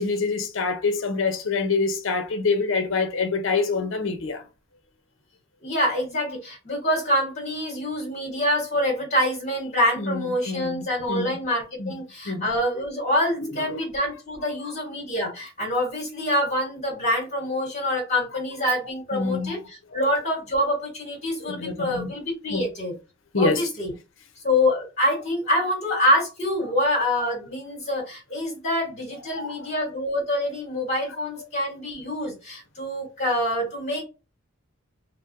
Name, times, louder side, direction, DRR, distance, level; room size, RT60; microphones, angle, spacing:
voice 1, 0.0-4.4 10.0-11.3 11.8-11.9 12.3-12.5 19.1-19.6 19.9-20.0 21.4-22.1 22.5-22.7 23.3-23.7 29.4-29.6, left 4 dB, 70° left, 0.7 m, -26 dB
voice 2, 5.6-22.9 23.3-23.9 24.4-34.0, left 1 dB, 45° left, 1.5 m, -26 dB
4.0 x 2.1 x 2.6 m
head